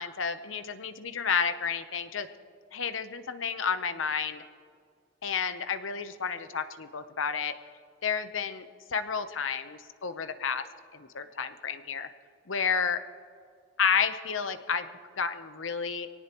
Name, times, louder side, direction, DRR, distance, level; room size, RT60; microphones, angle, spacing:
voice 1, 0.0-2.3 2.7-4.4 5.2-7.5 8.0-8.7 8.9-10.7 10.9-12.1 12.5-13.0 13.8-14.9 15.2-16.1, left 6 dB, 85° left, 10 dB, 0.8 m, -31 dB
23.5 x 18.0 x 3.0 m, 2.1 s
head